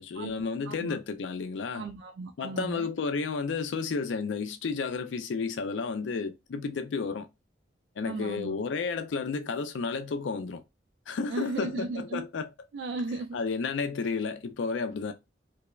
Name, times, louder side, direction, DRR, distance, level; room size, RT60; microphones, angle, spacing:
voice 1, 0.0-1.9 2.4-7.3 8.0-10.6 11.1-12.5 13.3-15.1, left 4 dB, 90° left, 0.4 m, -32 dB
voice 2, 0.7-1.0 1.7-2.9 8.0-8.6 11.3-12.2 12.7-13.4, right 3 dB, 75° right, 0.3 m, -36 dB
3.0 x 2.0 x 2.3 m
head